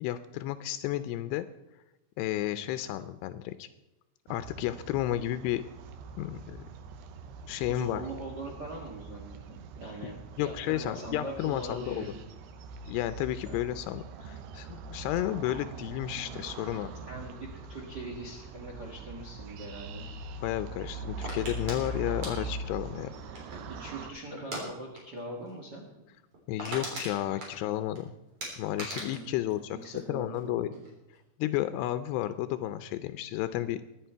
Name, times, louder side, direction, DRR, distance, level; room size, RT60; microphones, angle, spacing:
voice 1, 0.0-1.5 2.2-3.7 4.3-5.6 6.2-6.7 7.5-8.0 10.4-12.1 12.8-16.9 20.4-23.1 26.5-28.1 28.6-30.7 31.4-33.8, left 13 dB, 85° left, 12 dB, 2.7 m, -32 dB
sound 1, 4.3-24.1, right 3 dB, 90° right, 3.1 m, -42 dB
voice 2, 7.7-12.2 13.4-13.6 17.1-20.1 23.7-25.8 29.0-29.4 29.7-30.8, right 1 dB, 55° right, -1 dB, 1.1 m, -41 dB
sound 2, 21.2-23.8 24.4-24.7 24.9-25.2 25.5-25.6 26.0-26.1 26.3-28.0 28.4-30.4 30.7-31.2, right 1 dB, 35° right, 4.2 m, -40 dB
23.0 x 8.3 x 4.5 m, 1.0 s
omnidirectional pair, 4.7 m